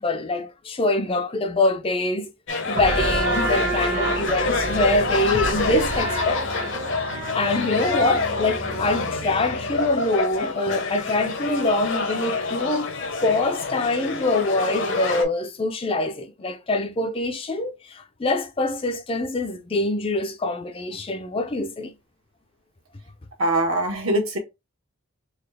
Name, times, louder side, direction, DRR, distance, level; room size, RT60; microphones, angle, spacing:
voice 1, 0.0-2.3 2.6-6.7 7.0-21.9, left 2 dB, 25° left, 0.4 m, -25 dB
sound 1, 2.5-15.2, left 3 dB, 55° left, 0.7 m, -27 dB
sound 2, 2.8-10.1, right 2 dB, 45° right, 0.9 m, -30 dB
voice 2, 23.4-24.4, right 1 dB, 75° right, 1.3 m, -22 dB
4.0 x 2.4 x 3.2 m
head